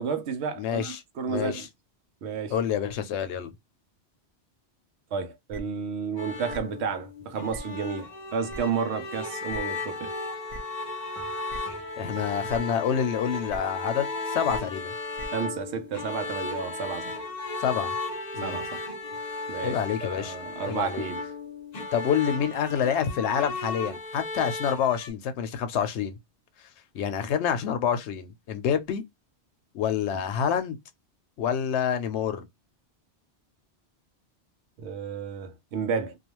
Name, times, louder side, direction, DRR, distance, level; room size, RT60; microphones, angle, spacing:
voice 1, 0.0-1.7 2.2-2.6 5.1-10.1 15.3-17.2 18.4-18.8 19.5-21.2 34.8-36.2, right 6 dB, 75° right, 0.9 m, -32 dB
voice 2, 0.6-1.0 1.3-1.7 2.5-3.5 12.0-14.9 17.6-17.9 18.3-18.6 19.6-20.4 20.7-21.1 21.9-26.2 26.9-29.0 29.7-30.8 31.4-32.4, left 8 dB, 80° left, 0.9 m, -27 dB
sound 1, 5.5-5.6 6.5-6.6 7.5-7.6 8.5-8.6 9.5-9.6 10.5-10.6 11.5-11.6 12.5-12.6 13.5-13.6 14.5-14.6 15.2-15.3, right 2 dB, 45° right, 0.7 m, -39 dB
sound 2, 6.2-25.1, left 3 dB, 45° left, 0.7 m, -35 dB
Piano, 11.1-13.7, right 3 dB, 25° right, 0.3 m, -44 dB
2.3 x 2.3 x 2.9 m
omnidirectional pair, 1.1 m